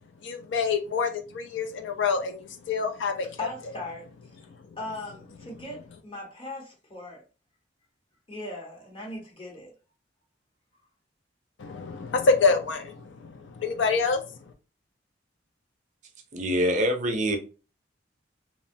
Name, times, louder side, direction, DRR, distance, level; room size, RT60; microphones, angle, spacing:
voice 1, 0.2-3.3 11.6-14.4, left 4 dB, 80° left, 0.4 m, -26 dB
voice 2, 3.4-4.1 4.8-7.2 8.3-9.7, left 2 dB, 30° left, 0.9 m, -39 dB
voice 3, 16.3-17.4, equal, 40° right, 0.4 m, -25 dB
2.8 x 2.1 x 2.6 m
head